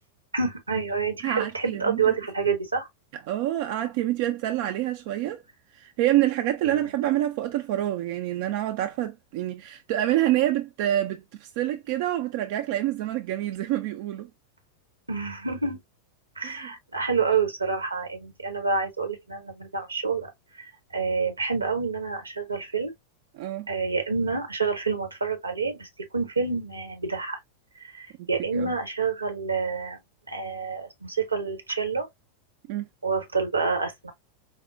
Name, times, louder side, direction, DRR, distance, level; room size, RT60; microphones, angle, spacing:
voice 1, 0.3-2.9 6.6-6.9 15.1-15.8 16.4-20.3 20.6-22.9 23.7-25.9 26.1-27.4 27.8-30.0 30.3-32.1 33.0-34.1, right 5 dB, 80° right, 0.9 m, -28 dB
voice 2, 1.2-2.2 3.3-5.4 5.7-14.3 16.4-16.7 23.3-23.7 28.2-28.7 32.7-32.9, right 13 dB, 50° right, 0.4 m, -27 dB
4.5 x 2.0 x 2.5 m
figure-of-eight pair, 90°, 0 cm